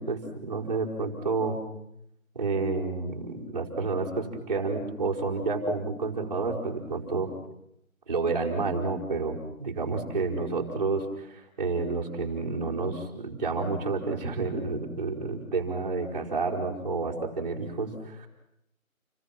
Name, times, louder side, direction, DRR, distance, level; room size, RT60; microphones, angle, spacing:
voice 1, 0.0-1.6 2.3-7.3 8.1-18.3, right 3 dB, 30° right, -2 dB, 4.9 m, -30 dB
29.5 x 25.5 x 6.0 m, 0.78 s
figure-of-eight pair, 170°, 42 cm